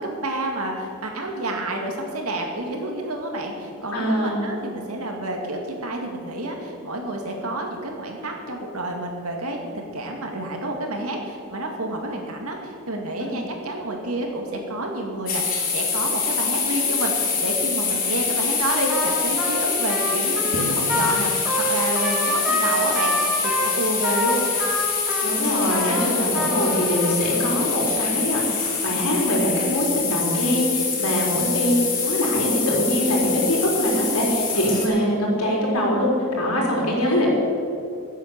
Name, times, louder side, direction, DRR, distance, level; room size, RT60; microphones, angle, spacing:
voice 1, 0.0-24.5 31.0-31.2, right 1 dB, 75° right, 1 dB, 2.3 m, -29 dB
voice 2, 3.9-4.4 13.2-13.3 25.2-31.7 32.0-37.3, equal, 80° left, -2 dB, 3.8 m, -23 dB
sound 1, 15.3-34.9, left 5 dB, 40° left, 2.8 m, -25 dB
Trumpet, 18.9-27.1, equal, 5° right, 2.0 m, -27 dB
Drum, 20.5-22.5, right 1 dB, 55° left, 2.0 m, -35 dB
15.5 x 8.2 x 6.9 m, 2.6 s
head